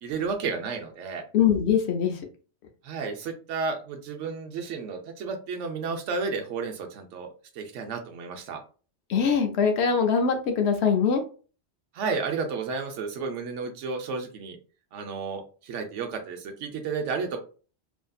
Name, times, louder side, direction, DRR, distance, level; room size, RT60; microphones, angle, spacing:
voice 1, 0.0-1.3 2.8-7.3 7.5-8.6 11.9-14.6 14.9-17.4, right 4 dB, 90° right, 5 dB, 1.0 m, -32 dB
voice 2, 1.3-2.1 9.1-11.2, left 6 dB, 70° left, 5 dB, 0.9 m, -22 dB
2.8 x 2.5 x 2.3 m, 0.37 s
omnidirectional pair, 1.2 m